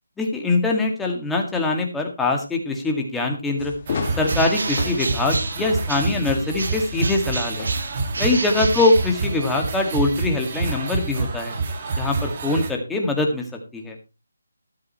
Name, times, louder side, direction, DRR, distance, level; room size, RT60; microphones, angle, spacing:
voice 1, 0.2-3.7 4.2-7.7 8.2-11.6 12.0-13.5 13.7-14.0, left 2 dB, 5° left, 1 dB, 1.9 m, -23 dB
sound 1, 3.6-8.7, left 5 dB, 35° left, 1.9 m, -35 dB
sound 2, 3.9-12.7, right 3 dB, 35° right, 2.3 m, -28 dB
Bird, 4.2-6.3 6.6-9.6, right 3 dB, 65° right, 1.3 m, -31 dB
13.5 x 12.5 x 3.1 m, 0.28 s
figure-of-eight pair, 165°, 0 cm